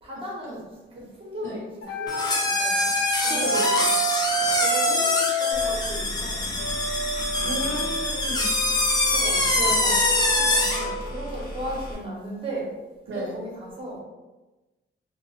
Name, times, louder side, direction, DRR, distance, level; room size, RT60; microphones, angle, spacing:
voice 1, 0.0-2.9 3.2-3.9 4.3-6.7 9.0-12.7 13.1-14.0, equal, 25° right, -4 dB, 0.8 m, -36 dB
sound 1, 1.8-5.8 6.6-11.1, right 1 dB, 85° left, 0.5 m, -30 dB
sound 2, 2.1-10.9, left 2 dB, 20° left, 0.4 m, -24 dB
voice 2, 3.3-3.6 7.4-8.5 9.5-10.0 13.1-13.4, right 1 dB, 65° right, -4 dB, 0.6 m, -33 dB
sound 3, 5.5-11.9, equal, 45° left, 0.8 m, -36 dB
2.8 x 2.0 x 2.8 m, 1.1 s
wide cardioid pair, 165°, 21 cm